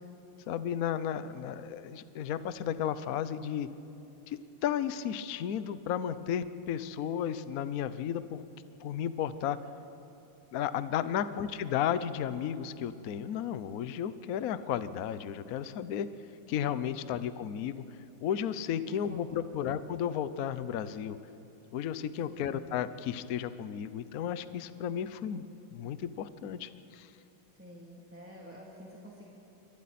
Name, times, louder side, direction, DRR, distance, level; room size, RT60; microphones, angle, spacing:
voice 1, 0.5-3.7 4.3-8.4 8.8-9.6 10.5-16.1 16.5-17.8 18.2-21.2 21.7-25.5 25.7-27.1, left 9 dB, 65° left, 13 dB, 0.9 m, -33 dB
voice 2, 16.9-17.2 18.9-19.7 22.3-22.6 27.5-29.3, equal, 5° right, -5 dB, 2.5 m, -51 dB
27.5 x 24.0 x 4.2 m, 3.0 s
omnidirectional pair, 2.3 m